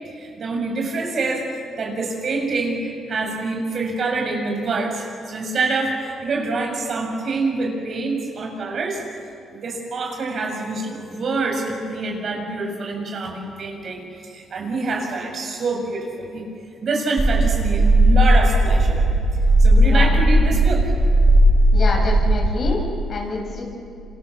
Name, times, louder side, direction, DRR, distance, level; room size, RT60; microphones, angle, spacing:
voice 1, 0.2-9.0 9.5-16.4 16.8-19.1 19.6-20.9, right 3 dB, 55° right, 1 dB, 6.8 m, -26 dB
sound 1, 17.2-22.5, right 1 dB, 20° right, 5.7 m, -16 dB
voice 2, 21.7-22.8 23.1-23.6, left 3 dB, 50° left, -1 dB, 7.9 m, -27 dB
27.5 x 27.0 x 7.2 m, 2.6 s
cardioid pair, 90°, 0 cm